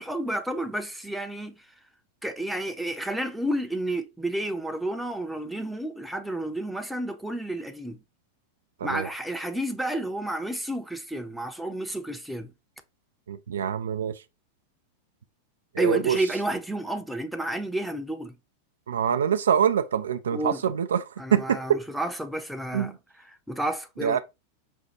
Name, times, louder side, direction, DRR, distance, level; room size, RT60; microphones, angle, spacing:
voice 1, 0.0-1.7 2.2-8.0 8.8-12.5 15.8-18.3 20.3-20.6 21.2-22.9 23.5-24.2, right 1 dB, ahead, 0.6 m, -31 dB
voice 2, 13.3-14.2 15.7-16.2 18.9-21.8 22.7-23.0 24.0-24.2, right 8 dB, 65° right, 0.3 m, -25 dB
5.2 x 2.3 x 2.8 m
figure-of-eight pair, 90°, 0 cm